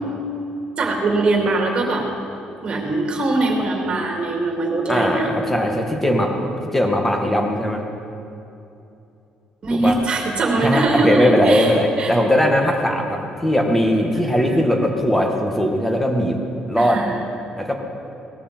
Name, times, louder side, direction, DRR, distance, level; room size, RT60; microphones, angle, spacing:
voice 1, 0.8-2.0 2.6-5.3 9.6-11.7 12.0-12.1 14.4-14.7 16.8-17.2, right 2 dB, 40° right, 1 dB, 2.7 m, -21 dB
voice 2, 4.9-7.8 9.7-10.0 10.6-16.4 16.7-17.0 17.6-17.8, equal, 10° left, 2 dB, 1.7 m, -19 dB
19.0 x 13.5 x 4.5 m, 2.8 s
cardioid pair, 140°, 3 cm